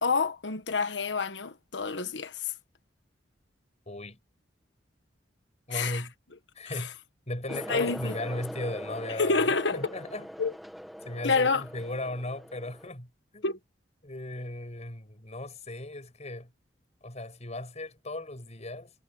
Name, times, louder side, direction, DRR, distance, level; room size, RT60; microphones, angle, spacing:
voice 1, 0.0-2.5 5.7-6.0 6.8-6.9 7.5-8.2 9.2-9.9 10.4-10.5 11.2-11.6 13.4-13.6, left 4 dB, 75° left, 1.4 m, -28 dB
voice 2, 3.9-4.2 5.7-6.1 6.5-6.9 7.3-9.4 9.7-10.3 11.0-13.5 14.0-16.5 17.0-18.9, left 1 dB, 40° left, 6.2 m, -37 dB
sound 1, 7.5-12.9, equal, ahead, 1.7 m, -42 dB
head